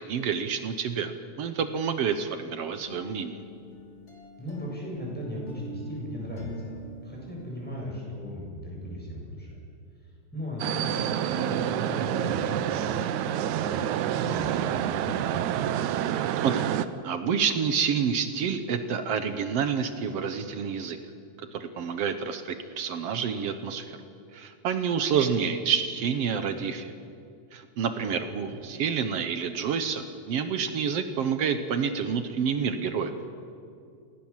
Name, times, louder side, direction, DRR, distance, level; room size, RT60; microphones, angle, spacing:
voice 1, 0.0-3.4 16.4-16.7 17.0-21.0 21.4-24.0 24.3-26.9 27.5-33.1, right 6 dB, 65° right, 9 dB, 1.9 m, -28 dB
sound 1, 2.6-7.8, right 2 dB, 25° left, 2.8 m, -46 dB
voice 2, 4.4-9.6 10.3-15.3 28.0-28.4, left 1 dB, 5° left, -3 dB, 7.6 m, -37 dB
sound 2, 10.6-16.9, right 11 dB, 85° right, 2.2 m, -28 dB
29.5 x 17.0 x 7.4 m, 2.4 s
omnidirectional pair, 3.3 m